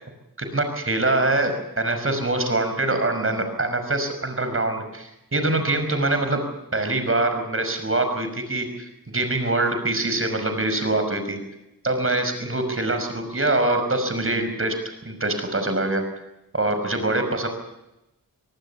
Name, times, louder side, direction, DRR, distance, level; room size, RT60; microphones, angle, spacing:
voice 1, 0.4-11.4 11.8-14.8 15.0-16.0 16.5-17.5, right 2 dB, 40° right, 7 dB, 5.7 m, -24 dB
24.5 x 18.5 x 7.1 m, 0.92 s
wide cardioid pair, 85°, 34 cm